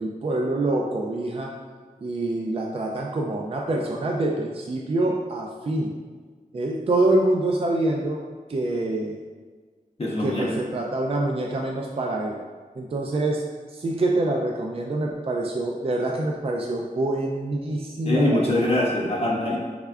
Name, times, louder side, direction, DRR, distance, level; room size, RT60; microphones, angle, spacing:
voice 1, 0.0-1.5 2.0-5.9 6.5-8.2 8.5-9.2 10.2-12.4 12.8-13.4 13.7-18.9, right 2 dB, 40° right, 0 dB, 0.3 m, -26 dB
voice 2, 10.0-10.5 18.0-19.6, left 1 dB, 40° left, -4 dB, 0.6 m, -23 dB
3.4 x 3.4 x 2.3 m, 1.5 s
cardioid pair, 40°, 15 cm